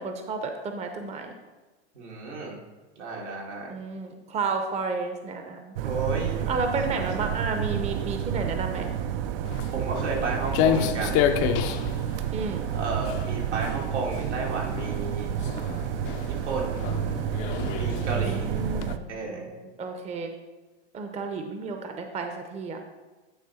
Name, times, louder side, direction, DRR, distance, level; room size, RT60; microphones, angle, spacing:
voice 1, 0.0-1.3 3.7-5.8 6.5-8.9 12.3-12.6 18.1-20.3 20.9-22.8, right 4 dB, 20° right, 5 dB, 0.7 m, -32 dB
voice 2, 1.9-2.6 3.0-3.7 5.8-6.5 6.9-7.1 9.7-11.2 12.7-15.3 16.3-16.9 17.8-18.5 19.1-19.5, right 3 dB, 85° right, -3 dB, 2.3 m, -32 dB
sound 1, 5.8-19.0, right 9 dB, 55° right, 0.5 m, -30 dB
Walk footsteps, 9.4-18.9, left 9 dB, 40° left, 0.6 m, -30 dB
9.6 x 3.3 x 5.5 m, 1.2 s
hypercardioid pair, 105°, 34 cm